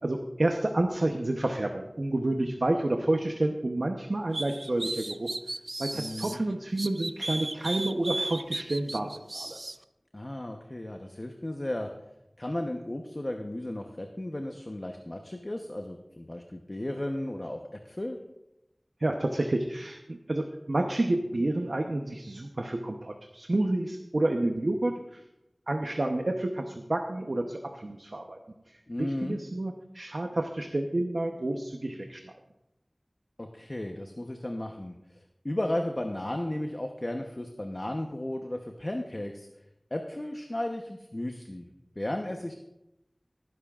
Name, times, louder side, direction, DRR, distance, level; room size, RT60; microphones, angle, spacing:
voice 1, 0.0-5.3 5.8-9.6 19.0-25.2 25.7-28.4 28.7-32.3, right 1 dB, 85° right, 3 dB, 0.9 m, -29 dB
sound 1, 4.3-6.4 6.8-9.8, right 2 dB, 70° right, 0.4 m, -35 dB
voice 2, 5.9-6.4 10.1-11.9 12.4-18.2 28.9-29.4 33.4-39.5 39.9-41.7 42.0-42.6, left 1 dB, 45° left, 3 dB, 0.9 m, -34 dB
18.5 x 11.0 x 2.5 m, 0.91 s
wide cardioid pair, 45°, 0 cm